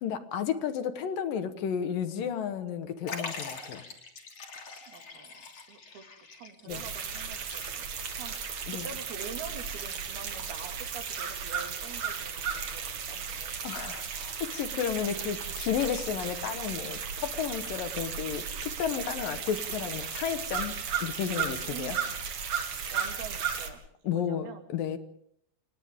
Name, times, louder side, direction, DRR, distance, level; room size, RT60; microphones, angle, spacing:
voice 1, 0.0-3.8 6.7-6.8 8.7-8.9 13.6-20.7 21.0-22.0 24.0-25.0, left 8 dB, 70° left, 9 dB, 2.9 m, -32 dB
Liquid, 3.1-8.2 8.4-8.5 9.5-9.6, left 4 dB, 45° left, 3.7 m, -42 dB
voice 2, 4.9-5.4 5.7-6.0 6.3-7.7 8.0-13.7 14.9-15.4 19.3-19.5 21.7-22.1 22.8-23.8 24.1-24.7, right 6 dB, 80° right, 4 dB, 4.3 m, -46 dB
sound 1, 6.7-23.7, right 6 dB, 50° right, 2.9 m, -35 dB
29.5 x 27.0 x 3.7 m, 0.72 s
omnidirectional pair, 4.4 m